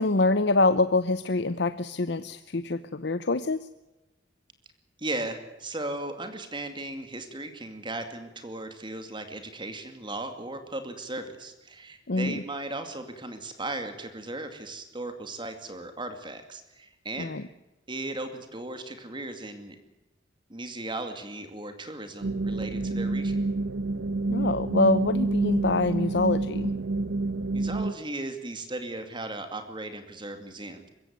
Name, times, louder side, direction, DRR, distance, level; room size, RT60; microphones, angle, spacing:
voice 1, 0.0-3.7 12.1-12.4 17.2-17.4 24.3-26.7, left 2 dB, 60° left, 12 dB, 0.8 m, -25 dB
voice 2, 5.0-17.3 17.9-19.8 20.5-23.4 27.5-30.9, right 2 dB, 25° right, 7 dB, 2.3 m, -37 dB
sound 1, 22.2-27.9, right 2 dB, 85° right, 1.1 m, -28 dB
22.0 x 16.0 x 9.4 m, 1.0 s
head